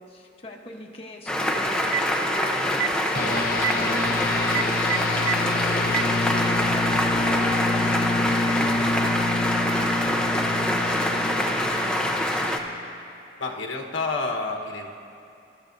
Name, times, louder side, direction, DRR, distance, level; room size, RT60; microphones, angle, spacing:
voice 1, 0.0-12.1, left 1 dB, 30° left, -1 dB, 1.1 m, -42 dB
sound 1, 1.3-12.6, left 1 dB, 5° left, 0.7 m, -25 dB
Telephone, 1.7-2.1 2.7-2.9 3.5-3.7 4.4-5.3 5.8-6.0, right 11 dB, 80° right, 0.4 m, -25 dB
sound 2, 3.1-12.9, left 3 dB, 50° left, 0.7 m, -28 dB
voice 2, 13.4-14.9, left 3 dB, 85° left, 1 dB, 1.2 m, -29 dB
26.0 x 13.0 x 2.7 m, 2.6 s
head